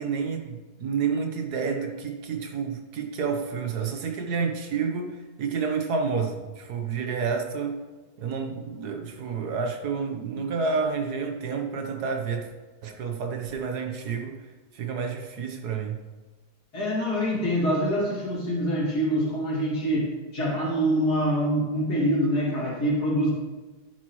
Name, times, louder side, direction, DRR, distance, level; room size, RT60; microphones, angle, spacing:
voice 1, 0.0-7.8 8.2-12.5 12.8-14.4 14.7-16.0, right 5 dB, 70° right, 4 dB, 1.5 m, -29 dB
voice 2, 16.7-23.3, equal, 65° left, -4 dB, 2.9 m, -25 dB
10.5 x 8.8 x 3.1 m, 1.2 s
omnidirectional pair, 1.8 m